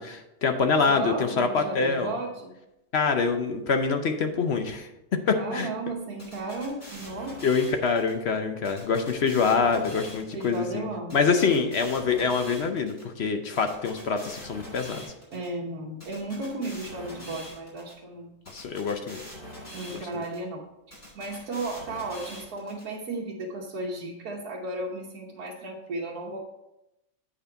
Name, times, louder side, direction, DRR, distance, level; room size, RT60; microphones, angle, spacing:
voice 1, 0.0-2.1 2.9-4.9 5.3-5.7 7.4-10.9 11.1-15.1 18.5-19.2 19.9-20.1, left 5 dB, 55° left, 6 dB, 0.8 m, -25 dB
voice 2, 0.6-2.6 5.3-7.4 10.3-11.7 15.3-18.3 19.7-20.6 21.1-26.4, right 2 dB, 70° right, -4 dB, 1.5 m, -34 dB
sound 1, 6.2-8.1 8.6-10.6 11.1-13.0 13.6-15.5 16.0-17.9 18.5-20.4 20.9-22.8, left 1 dB, 40° left, 3.8 m, -43 dB
8.6 x 5.6 x 4.5 m, 0.91 s
omnidirectional pair, 1.7 m